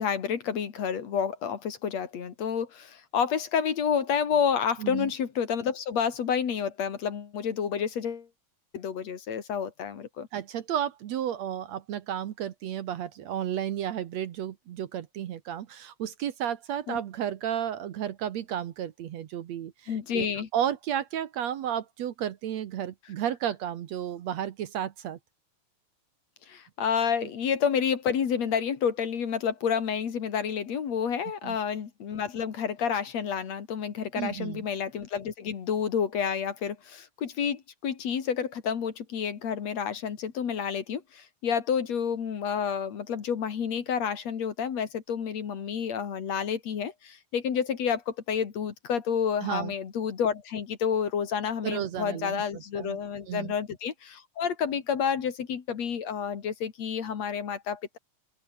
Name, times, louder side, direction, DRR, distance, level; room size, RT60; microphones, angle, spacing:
voice 1, 0.0-8.3 8.7-10.3 16.9-17.0 19.9-20.5 26.5-58.0, left 7 dB, 60° left, 3.2 m, -29 dB
voice 2, 4.8-5.1 10.3-20.3 20.5-25.2 31.4-31.6 34.2-34.6 49.4-49.7 51.6-52.4 52.7-53.0 53.3-53.5, right 10 dB, 65° right, 2.2 m, -32 dB
open air
omnidirectional pair, 3.6 m